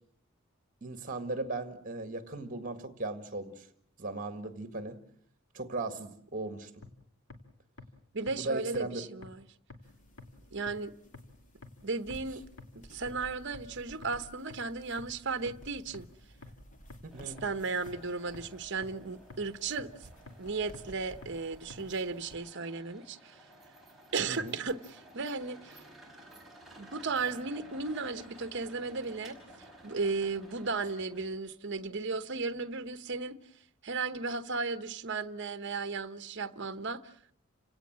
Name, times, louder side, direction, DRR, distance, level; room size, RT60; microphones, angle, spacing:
voice 1, 0.8-3.7 4.0-5.0 5.5-6.7 8.3-9.0 17.0-17.4 24.3-24.6, right 2 dB, 40° right, 1.9 m, -37 dB
sound 1, 6.8-6.9 7.3-7.4 7.8-7.9 8.3-8.4 8.7-8.8 9.2-9.3 9.7-9.8 10.2-10.3 10.7-10.8 11.1-11.2 11.6-11.7 12.1-12.2 12.6-12.7 13.1-13.2 13.5-13.6 14.0-14.1 14.5-14.6 15.0-15.1 15.5-15.6 15.9-16.0 16.4-16.5 16.9-17.0 17.4-17.5 17.9-18.0 18.3-18.4 18.8-18.9 19.3-19.4 19.8-19.9 20.3-20.4 20.7-20.8 21.2-21.3 21.7-21.8, left 3 dB, 65° left, 2.8 m, -47 dB
voice 2, 8.1-9.5 10.5-10.9 11.8-12.4 12.7-16.1 17.2-19.9 20.4-23.4 24.1-25.8 26.8-29.4 29.8-33.4 33.8-37.1, right 4 dB, 55° right, 1.0 m, -35 dB
sound 2, 9.8-22.4, equal, 40° left, 3.0 m, -55 dB
sound 3, 17.1-31.4, right 1 dB, ahead, 5.1 m, -55 dB
29.5 x 17.5 x 7.5 m
head